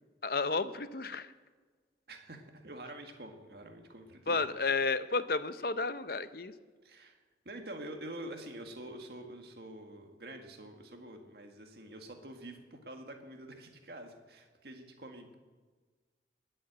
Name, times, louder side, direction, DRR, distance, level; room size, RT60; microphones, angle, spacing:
voice 1, 0.2-1.3 4.3-6.5, left 4 dB, 55° left, 12 dB, 0.7 m, -32 dB
voice 2, 2.1-4.4 6.8-7.2 7.5-15.3, right 1 dB, 60° right, 4 dB, 1.8 m, -47 dB
20.5 x 7.8 x 8.0 m, 1.4 s
head